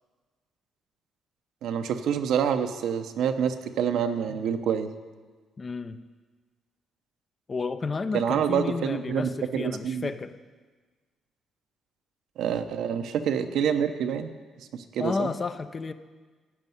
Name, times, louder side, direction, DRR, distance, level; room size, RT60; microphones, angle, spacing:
voice 1, 1.6-4.9 8.1-10.1 12.4-14.3 14.6-15.3, right 8 dB, 80° right, 8 dB, 0.8 m, -27 dB
voice 2, 5.6-6.0 7.5-10.3 15.0-15.9, left 4 dB, 35° left, 10 dB, 0.7 m, -31 dB
13.5 x 5.4 x 9.3 m, 1.4 s
cardioid pair, 90°, 0 cm